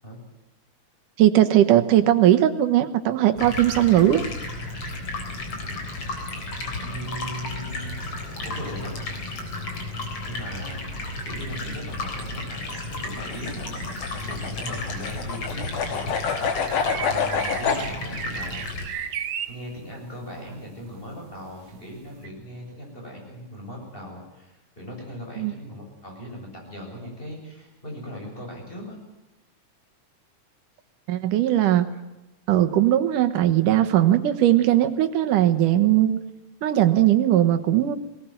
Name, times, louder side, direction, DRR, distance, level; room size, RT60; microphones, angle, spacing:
voice 1, 1.2-4.2 25.4-25.5 31.1-31.9 32.5-36.2 36.6-38.0, right 12 dB, 90° right, 8 dB, 2.8 m, -19 dB
Stream, 3.4-18.8, left 2 dB, 50° left, 4.7 m, -33 dB
voice 2, 6.8-7.9 8.4-8.9 10.2-10.9 11.2-16.2 17.1-18.7 19.5-29.0, equal, 15° left, 0 dB, 7.5 m, -38 dB
sound 1, 7.7-8.7 9.0-15.3 15.5-22.3, right 8 dB, 60° right, 1.3 m, -38 dB
sound 2, 13.1-17.8, left 6 dB, 80° left, 3.3 m, -27 dB
20.0 x 19.0 x 9.1 m, 1.0 s
omnidirectional pair, 3.6 m